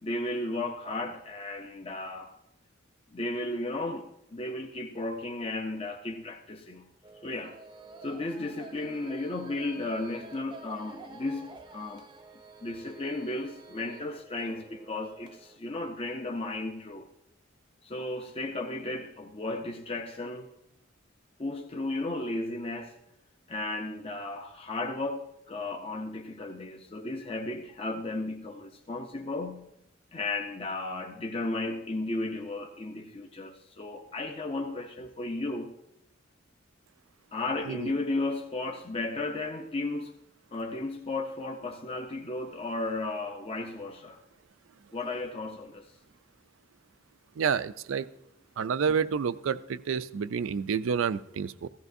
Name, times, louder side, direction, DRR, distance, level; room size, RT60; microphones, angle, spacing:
voice 1, 0.0-2.3 3.1-6.9 7.2-7.6 8.0-12.1 12.6-17.1 17.8-20.5 21.4-22.9 23.5-29.7 30.1-35.7 37.3-40.1 40.5-44.2 44.9-45.9, left 2 dB, 30° left, 2 dB, 0.6 m, -34 dB
sound 1, 7.0-15.6, right 3 dB, 25° right, 0.6 m, -50 dB
voice 2, 47.4-48.1 48.6-51.7, right 6 dB, 80° right, 15 dB, 0.4 m, -29 dB
16.0 x 13.5 x 2.6 m, 0.82 s
head